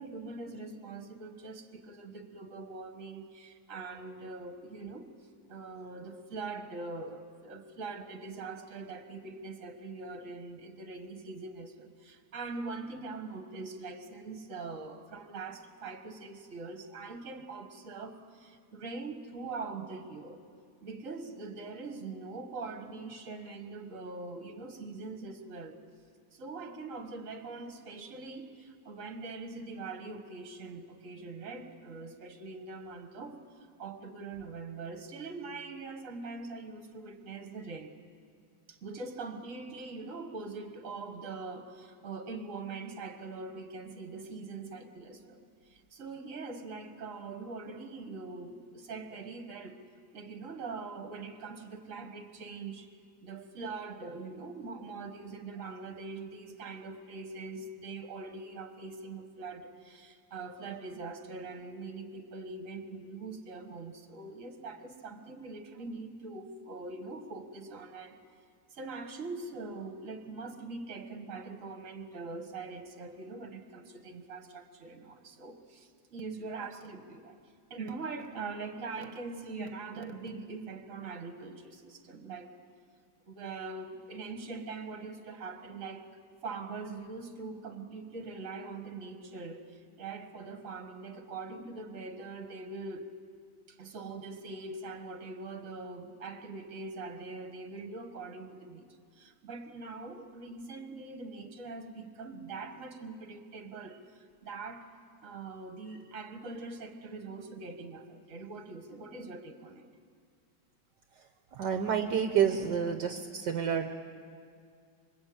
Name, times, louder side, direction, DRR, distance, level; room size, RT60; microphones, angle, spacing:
voice 1, 0.0-5.1 5.5-20.4 20.8-25.8 26.3-33.4 33.8-37.9 38.7-49.8 50.1-52.9 53.2-68.2 68.7-77.4 77.7-82.5 83.3-86.1 86.4-93.1 93.7-98.9 99.2-104.9 105.2-109.9, right 3 dB, 45° right, 7 dB, 2.0 m, -42 dB
voice 2, 111.5-113.9, right 8 dB, 65° right, 6 dB, 1.6 m, -29 dB
25.5 x 23.0 x 8.7 m, 2.2 s
omnidirectional pair, 2.0 m